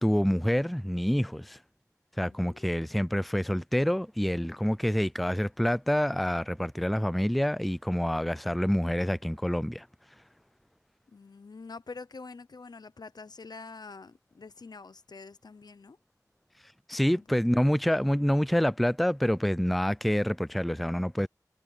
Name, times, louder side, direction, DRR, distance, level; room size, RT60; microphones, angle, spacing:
voice 1, 0.0-1.6 2.2-9.9 16.9-21.3, equal, ahead, 0.3 m, -27 dB
voice 2, 2.3-2.7 11.1-16.0 17.1-17.4, left 4 dB, 85° left, 0.8 m, -46 dB
wide cardioid pair, 55°, 7 cm